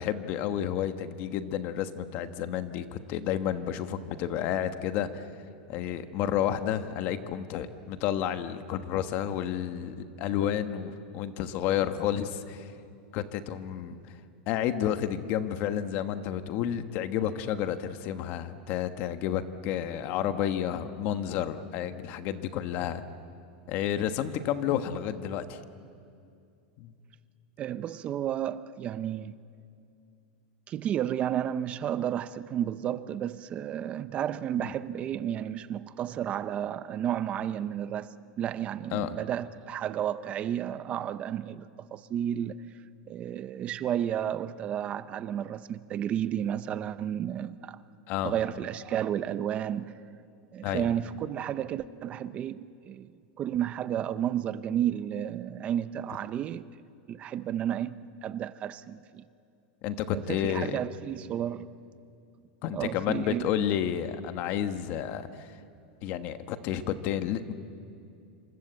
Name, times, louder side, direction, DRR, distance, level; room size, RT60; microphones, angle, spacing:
voice 1, 0.0-5.2 5.7-12.7 13.1-14.0 14.5-23.0 23.7-25.6 26.8-26.9 34.6-34.7 38.9-39.2 48.1-48.3 50.6-50.9 59.8-60.8 62.6-65.5 66.0-67.5, left 10 dB, 40° left, 1.3 m, -31 dB
voice 2, 27.6-29.4 30.7-42.6 43.1-47.8 48.2-50.0 50.5-53.1 53.4-56.7 57.1-59.2 60.1-61.7 62.7-63.4, right 10 dB, 25° right, 0.6 m, -32 dB
27.0 x 26.5 x 8.1 m
supercardioid pair, 165°, 5 cm